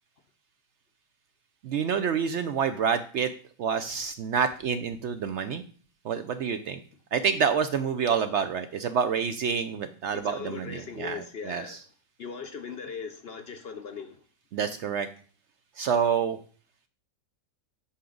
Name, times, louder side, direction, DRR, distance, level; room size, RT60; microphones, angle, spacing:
voice 1, 1.6-3.3 3.6-5.6 6.0-6.8 7.1-11.8 14.5-15.1 15.8-16.4, right 6 dB, 65° right, 0.7 m, -28 dB
voice 2, 10.1-11.8 12.2-14.2, left 5 dB, 55° left, 0.7 m, -39 dB
8.4 x 5.8 x 3.8 m
omnidirectional pair, 1.5 m